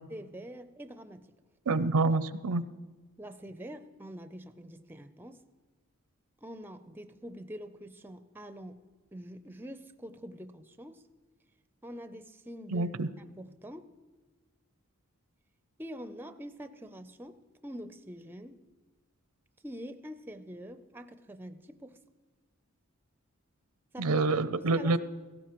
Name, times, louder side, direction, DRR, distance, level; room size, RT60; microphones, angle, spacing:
voice 1, 0.1-1.3 3.2-5.4 6.4-8.8 9.1-11.0 11.8-12.9 13.3-13.9 15.8-18.6 19.6-22.0 23.9-24.2 24.6-25.0, equal, 10° right, 9 dB, 0.4 m, -45 dB
voice 2, 1.7-2.6 12.7-13.1 24.0-25.0, right 3 dB, 85° right, 14 dB, 0.5 m, -27 dB
17.0 x 15.5 x 3.0 m, 1.3 s
head